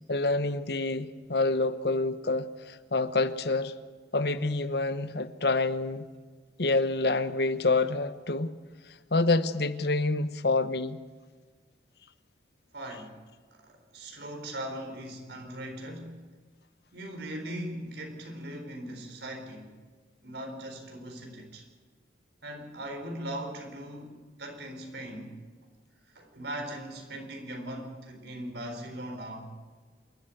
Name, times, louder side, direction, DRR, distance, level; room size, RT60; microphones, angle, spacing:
voice 1, 0.1-3.7 4.1-6.1 6.6-8.6 9.1-11.0, left 3 dB, 65° left, 1.0 m, -27 dB
voice 2, 12.7-13.2 13.5-16.3 16.9-19.7 20.2-21.7 22.4-25.3 26.1-29.5, right 1 dB, 70° right, 4.1 m, -39 dB
27.0 x 12.5 x 9.2 m
head